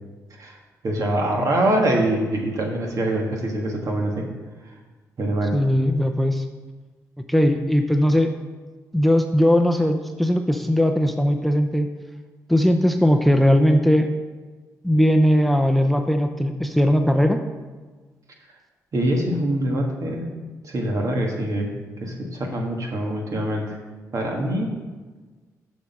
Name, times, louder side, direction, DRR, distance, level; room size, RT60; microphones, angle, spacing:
voice 1, 0.8-4.2 5.2-5.5 18.9-20.3 20.6-21.7 22.0-23.8 24.1-24.7, right 1 dB, 60° right, 1 dB, 1.6 m, -24 dB
voice 2, 5.5-6.4 7.3-8.3 8.9-11.9 12.5-14.1 14.8-17.4, equal, ahead, 6 dB, 0.6 m, -19 dB
6.7 x 6.1 x 5.4 m, 1.3 s
cardioid pair, 70°, 6 cm